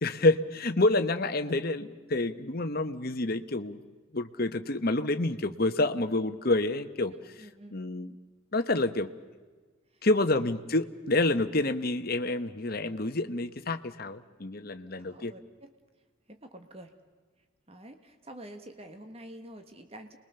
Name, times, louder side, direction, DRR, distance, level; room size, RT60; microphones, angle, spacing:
voice 1, 0.0-3.8 4.1-7.5 7.7-8.1 8.5-9.1 10.0-15.3, left 2 dB, 45° left, 8 dB, 1.1 m, -28 dB
voice 2, 7.1-7.8 9.9-10.4 15.0-15.7 16.3-16.9 17.7-20.2, right 1 dB, 30° right, 6 dB, 1.6 m, -48 dB
29.5 x 21.5 x 6.9 m, 1.4 s
head